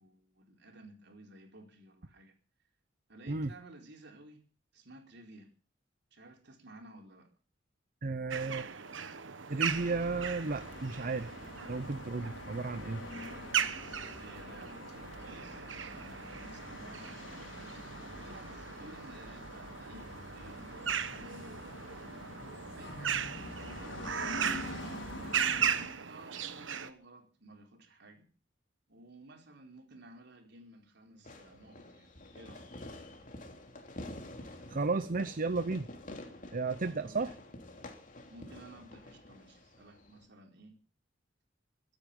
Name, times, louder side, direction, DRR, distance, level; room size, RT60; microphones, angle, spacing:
voice 1, 0.0-2.4 3.1-4.4 4.7-5.5 6.1-7.3 13.6-17.6 18.1-21.6 21.9-22.2 22.7-23.2 23.6-28.3 28.9-32.7 36.9-37.3 38.3-40.8, right 1 dB, 65° right, 4.4 m, -54 dB
voice 2, 8.0-8.7 9.5-11.3 11.7-13.0 34.7-35.9 36.5-37.3, right 3 dB, 50° right, 0.7 m, -33 dB
sound 1, 8.3-26.9, right 7 dB, 80° right, 1.3 m, -38 dB
sound 2, 9.7-25.9, left 1 dB, 90° left, 3.9 m, -46 dB
Fireworks, 31.2-40.3, left 1 dB, 45° left, 3.0 m, -49 dB
23.5 x 9.6 x 5.4 m
head